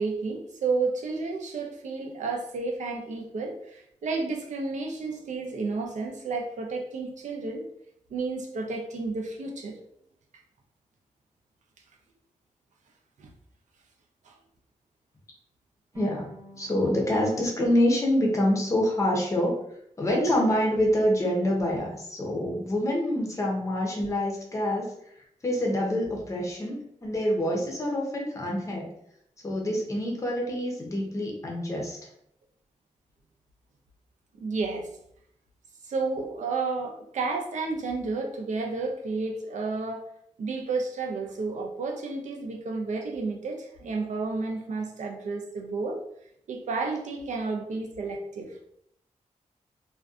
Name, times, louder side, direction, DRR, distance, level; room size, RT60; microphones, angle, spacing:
voice 1, 0.0-7.6 8.1-9.8 13.2-13.3 14.2-14.3 34.4-34.9 35.8-40.0 40.4-46.0 46.5-48.6, right 3 dB, 70° right, 1 dB, 0.5 m, -31 dB
voice 2, 15.9-16.3 16.6-19.6 20.0-24.9 25.4-28.9 29.4-32.0, left 1 dB, 25° left, -1 dB, 0.6 m, -26 dB
sound 1, 15.9-19.1, left 1 dB, 20° right, 0.7 m, -51 dB
2.5 x 2.2 x 2.4 m, 0.72 s
wide cardioid pair, 145°, 13 cm